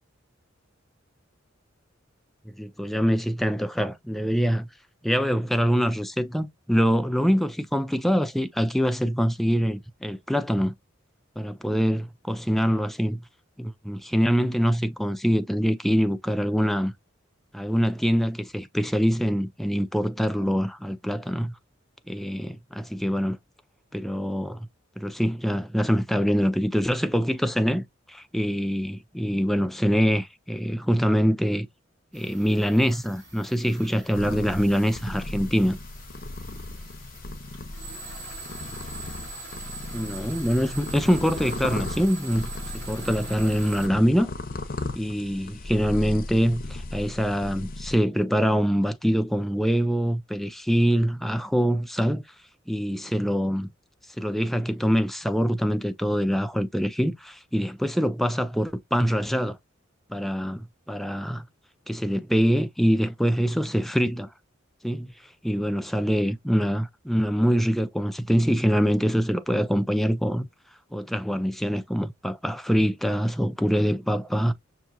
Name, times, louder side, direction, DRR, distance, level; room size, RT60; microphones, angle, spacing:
voice 1, 2.5-4.7 5.0-10.7 11.4-13.2 13.6-16.9 17.5-21.5 22.1-23.4 23.9-24.7 25.0-31.7 32.1-35.8 39.9-42.5 42.7-44.3 45.0-52.2 52.7-53.7 54.2-59.6 60.1-61.4 61.9-64.3 64.8-65.1 65.4-70.5 70.9-74.5, equal, ahead, 0.4 m, -24 dB
sound 1, 32.1-43.9, right 3 dB, 60° right, 3.4 m, -43 dB
sound 2, 34.1-48.0, left 2 dB, 45° left, 0.7 m, -36 dB
5.8 x 2.7 x 2.6 m
head